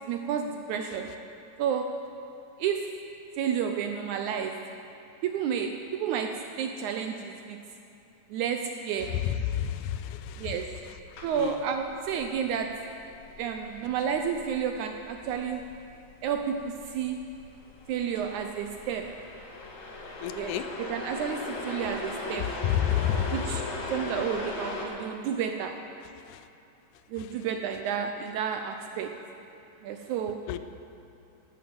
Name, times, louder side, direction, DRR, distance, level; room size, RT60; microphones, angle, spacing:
voice 1, 0.1-1.1 1.6-1.9 2.6-3.0 3.4-4.6 5.2-7.6 8.3-9.1 10.4-10.7 11.2-12.7 13.4-15.6 16.2-17.2 17.9-19.1 20.3-22.5 23.3-23.6 23.9-25.7 27.1-29.1 29.8-30.4, right 7 dB, 80° right, 5 dB, 1.8 m, -31 dB
voice 2, 9.1-10.6 11.3-11.6 20.2-20.7 22.4-23.7 26.3-26.5 27.2-27.3 30.5-30.6, left 10 dB, 80° left, 10 dB, 1.9 m, -30 dB
sound 1, 10.3-24.9, left 2 dB, 60° left, 2.8 m, -39 dB
12.0 x 9.3 x 7.9 m, 2.7 s
omnidirectional pair, 3.9 m